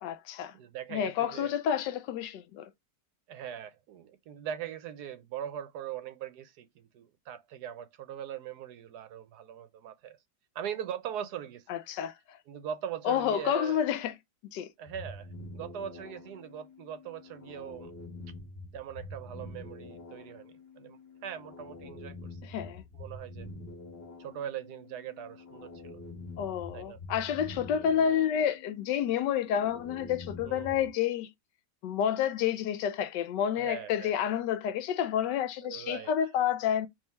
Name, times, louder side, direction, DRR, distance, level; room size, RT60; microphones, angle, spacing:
voice 1, 0.0-0.5 0.9-2.7 11.7-12.4 13.0-14.1 14.5-14.7 22.4-22.8 26.4-31.3 31.8-36.9, left 9 dB, 80° left, 1.2 m, -29 dB
voice 2, 0.5-1.5 3.3-10.2 10.5-11.7 12.5-13.8 14.8-17.9 18.7-22.5 23.0-23.5 24.2-26.0 26.7-27.0 30.4-30.9 33.6-34.1 35.6-36.1, right 9 dB, 75° right, 1.1 m, -41 dB
sound 1, 14.8-30.9, left 2 dB, 35° left, 1.4 m, -46 dB
3.6 x 2.7 x 4.3 m
omnidirectional pair, 1.9 m